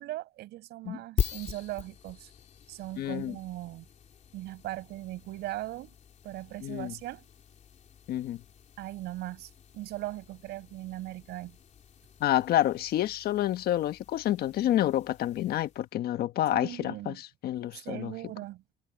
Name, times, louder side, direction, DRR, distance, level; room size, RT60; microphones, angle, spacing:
voice 1, 0.0-2.3 2.7-3.9 4.3-5.9 6.2-7.2 8.8-11.6 16.5-17.2 17.8-18.6, right 16 dB, 80° right, 5.7 m, -39 dB
sound 1, 1.2-15.9, left 7 dB, 45° left, 3.1 m, -42 dB
voice 2, 3.0-3.3 6.6-6.9 8.1-8.4 12.2-18.1, left 13 dB, 70° left, 1.3 m, -28 dB
cardioid pair, 110°, 17 cm